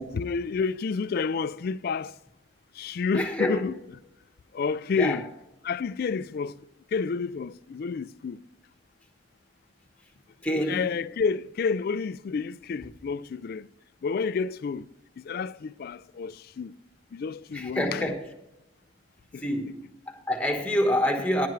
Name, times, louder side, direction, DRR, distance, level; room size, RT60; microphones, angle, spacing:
voice 1, 0.1-2.2 2.7-3.8 4.5-5.3 5.6-6.6 6.9-8.4 10.7-13.7 14.0-14.9 15.2-16.7 17.1-18.1 19.3-19.4, left 5 dB, 50° left, 0.3 m, -30 dB
voice 2, 3.1-3.6 4.9-5.2 10.4-10.8 17.5-18.2 19.4-21.5, equal, 5° left, 1.4 m, -27 dB
15.0 x 10.5 x 3.3 m
head